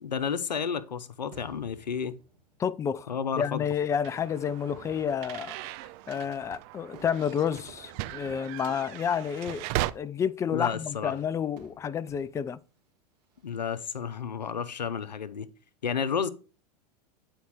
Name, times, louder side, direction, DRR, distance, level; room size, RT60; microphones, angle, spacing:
voice 1, 0.0-2.2 3.1-3.7 10.5-11.1 13.4-15.5 15.8-16.3, left 6 dB, 85° left, 0.7 m, -31 dB
Fireworks, 1.3-2.9 3.8-3.9 4.5-9.8 10.9-12.7 13.2-13.7, right 2 dB, 75° right, 2.5 m, -53 dB
voice 2, 2.6-5.5 6.1-9.7 9.9-12.6, left 8 dB, 15° left, 0.4 m, -30 dB
sound 1, 4.0-9.9, right 16 dB, 45° right, 0.5 m, -37 dB
9.3 x 4.4 x 4.6 m
hypercardioid pair, 90°, 21 cm